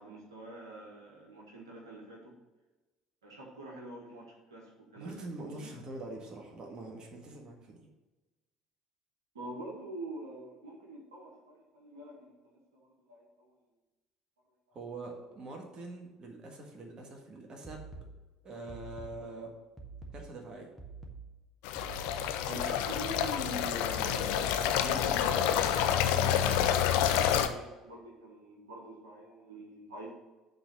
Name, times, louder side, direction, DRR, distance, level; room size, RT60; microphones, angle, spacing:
voice 1, 0.0-2.3 3.2-5.7 9.3-13.5 22.5-30.1, right 1 dB, 80° right, -2 dB, 1.6 m, -45 dB
voice 2, 4.9-7.9 14.7-17.8 18.4-19.5 20.1-20.7, right 2 dB, 35° right, 1 dB, 1.7 m, -44 dB
sound 1, 17.6-22.6, right 4 dB, 5° left, 1.7 m, -48 dB
WS running water, 21.6-27.5, left 9 dB, 60° left, 0.6 m, -28 dB
8.7 x 4.0 x 6.8 m, 1.2 s
figure-of-eight pair, 55°, 2 cm